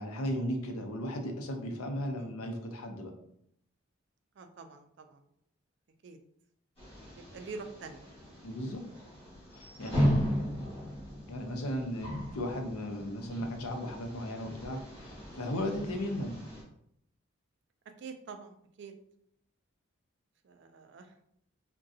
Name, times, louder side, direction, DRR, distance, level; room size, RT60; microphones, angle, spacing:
voice 1, 0.0-3.1 8.4-8.8 9.5-10.1 11.3-16.4, equal, 90° left, 4 dB, 0.6 m, -36 dB
voice 2, 4.4-5.2 6.0-6.2 7.2-8.2 10.4-10.5 11.4-11.6 18.0-18.9 20.4-21.1, right 4 dB, 55° right, 6 dB, 0.3 m, -46 dB
sound 1, 6.8-16.6, equal, 25° left, 1.3 m, -36 dB
3.7 x 2.2 x 2.6 m, 0.70 s
head